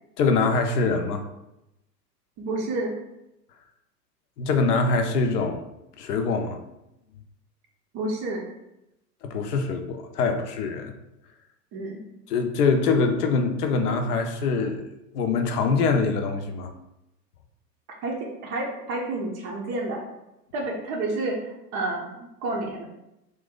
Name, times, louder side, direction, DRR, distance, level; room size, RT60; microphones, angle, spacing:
voice 1, 0.2-1.2 4.4-5.6 6.0-6.6 9.2-10.9 12.3-14.8 15.1-16.7, left 4 dB, 65° left, 5 dB, 0.6 m, -24 dB
voice 2, 2.4-2.9 7.9-8.5 11.7-12.0 18.0-18.1 18.4-20.0 20.5-22.8, right 2 dB, 25° right, 0 dB, 0.5 m, -29 dB
2.9 x 2.6 x 3.5 m, 0.89 s
hypercardioid pair, 105°, 50 cm